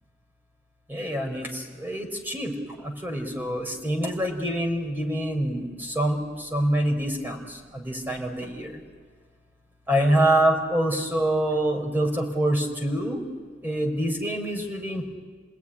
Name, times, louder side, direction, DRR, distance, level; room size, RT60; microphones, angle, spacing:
voice 1, 0.9-2.5 2.8-8.7 9.9-13.2 13.6-15.1, right 1 dB, 10° right, 3 dB, 4.3 m, -26 dB
29.0 x 19.5 x 9.9 m, 1.5 s
head